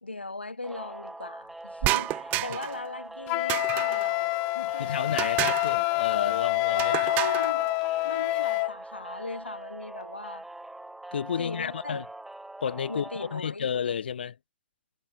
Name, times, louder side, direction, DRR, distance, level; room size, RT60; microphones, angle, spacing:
voice 1, 0.0-4.9 6.8-7.7 8.0-10.4 11.4-12.0 12.9-13.7, left 3 dB, 90° left, 2.4 m, -39 dB
sound 1, 0.6-13.4, right 2 dB, 5° right, 2.9 m, -42 dB
sound 2, 1.8-2.8 3.5-4.1 5.2-5.8 6.8-7.5, right 19 dB, 30° right, 0.4 m, -29 dB
Wind instrument woodwind instrument, 3.3-8.7, left 31 dB, 35° left, 0.9 m, -27 dB
voice 2, 4.8-6.9 11.1-12.0 12.6-14.4, left 7 dB, 65° left, 0.8 m, -31 dB
figure-of-eight pair, 115°, 6 cm